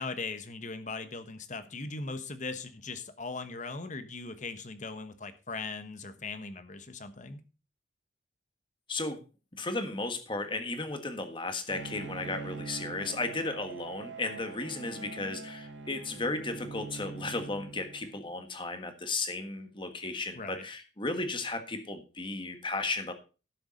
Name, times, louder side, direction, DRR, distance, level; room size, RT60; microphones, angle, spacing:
voice 1, 0.0-7.4 20.3-20.6, left 3 dB, 40° left, 10 dB, 1.2 m, -39 dB
voice 2, 9.6-23.1, left 3 dB, 25° left, 7 dB, 1.6 m, -35 dB
Bowed string instrument, 11.7-18.4, right 4 dB, 80° right, 1.3 m, -43 dB
12.0 x 6.9 x 5.2 m, 0.33 s
head